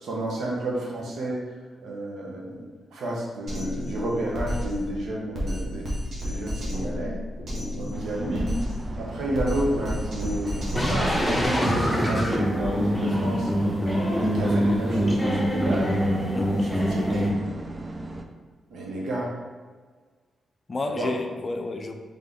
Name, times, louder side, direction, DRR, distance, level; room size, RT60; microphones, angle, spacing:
voice 1, 0.0-1.4 1.8-7.2 7.8-8.5 9.0-13.5 14.1-15.9 16.6-17.3 18.7-19.3 20.9-21.1, right 1 dB, 75° right, -3 dB, 1.0 m, -31 dB
Drum kit, 3.5-11.5, left 1 dB, 55° right, 1.5 m, -32 dB
sound 1, 7.9-18.3, right 2 dB, 35° right, 0.5 m, -37 dB
sound 2, 10.8-17.3, equal, 5° left, 1.1 m, -24 dB
voice 2, 16.3-16.8 20.7-21.9, left 3 dB, 40° left, 5 dB, 0.5 m, -31 dB
3.8 x 3.6 x 3.5 m, 1.5 s
cardioid pair, 60°, 0 cm